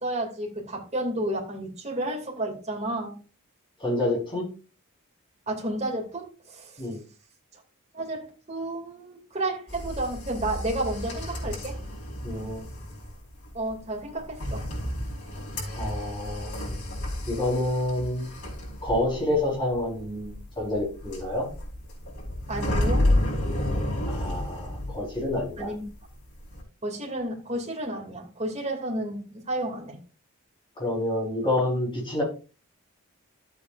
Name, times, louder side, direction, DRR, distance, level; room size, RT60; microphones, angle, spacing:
voice 1, 0.0-3.2 5.5-6.8 7.5-7.6 7.9-11.8 13.5-14.7 22.5-23.1 25.6-25.8 26.8-30.0, right 1 dB, 30° right, 2.6 m, -31 dB
voice 2, 3.8-4.5 6.8-7.0 12.2-12.6 15.7-16.5 17.2-18.2 18.8-21.5 24.1-25.7 30.8-32.2, left 1 dB, 20° left, 4.7 m, -28 dB
sound 1, 9.7-25.6 25.9-26.6, left 1 dB, 80° left, 4.7 m, -31 dB
13.0 x 8.2 x 2.6 m
head